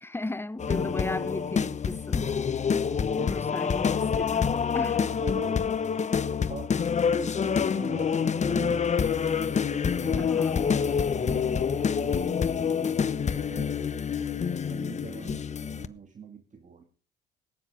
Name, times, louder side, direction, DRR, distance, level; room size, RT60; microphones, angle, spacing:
voice 1, 0.0-2.3 3.2-5.1 10.2-10.6, left 2 dB, 10° left, 0.8 m, -36 dB
sound 1, 0.6-15.9, left 6 dB, 35° left, 1.0 m, -27 dB
voice 2, 2.7-3.4 5.0-5.7 6.5-10.6 11.1-13.0 13.3-13.7 14.3-16.8, right 5 dB, 40° right, 2.3 m, -43 dB
18.0 x 10.0 x 5.0 m
supercardioid pair, 65°, 20 cm